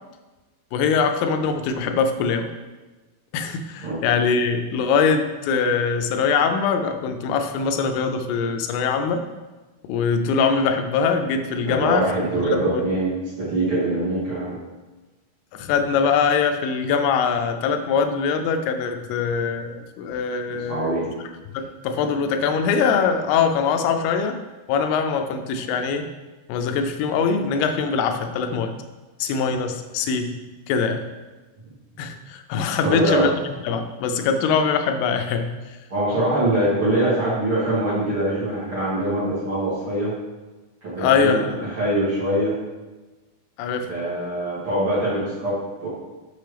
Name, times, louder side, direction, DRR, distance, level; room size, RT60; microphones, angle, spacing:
voice 1, 0.7-2.5 3.3-9.2 9.8-12.1 12.5-12.8 15.5-21.0 21.5-24.4 24.7-26.1 26.5-28.8 29.2-30.4 30.7-31.0 32.0-33.3 33.6-35.6 41.0-41.7 43.6-43.9, left 5 dB, 85° left, 6 dB, 2.6 m, -22 dB
voice 2, 11.6-14.5 20.5-21.1 32.8-33.3 35.9-40.1 40.8-41.4 41.8-42.5 43.9-45.9, right 1 dB, 40° right, -10 dB, 2.4 m, -23 dB
6.9 x 6.0 x 3.3 m, 1.2 s
omnidirectional pair, 4.6 m